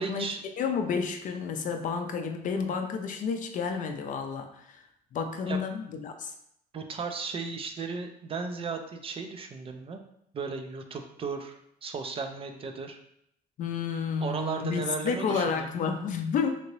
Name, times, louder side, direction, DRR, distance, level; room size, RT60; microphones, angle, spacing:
voice 1, 0.0-0.4 5.5-5.6 6.7-10.0 10.3-13.0 14.2-15.9, right 4 dB, 35° right, 5 dB, 0.3 m, -35 dB
voice 2, 0.6-4.8 5.1-6.3 13.6-16.5, left 5 dB, 50° left, 5 dB, 0.4 m, -30 dB
2.9 x 2.7 x 3.0 m, 0.74 s
cardioid pair, 110°, 17 cm